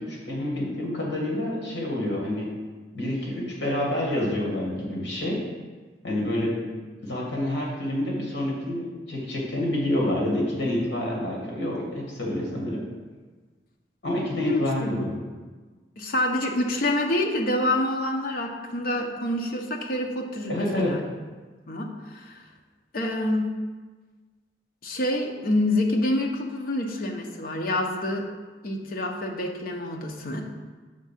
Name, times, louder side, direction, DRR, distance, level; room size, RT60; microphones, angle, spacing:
voice 1, 0.0-2.5 2.9-5.4 6.0-6.6 7.0-12.8 14.0-15.2 20.5-21.0, left 1 dB, 70° left, -3 dB, 1.9 m, -28 dB
voice 2, 14.4-15.1 16.0-21.0 21.7-22.4 22.9-23.5 24.8-28.3 28.6-30.4, left 1 dB, 55° left, 2 dB, 0.8 m, -27 dB
6.4 x 3.6 x 5.7 m, 1.3 s
head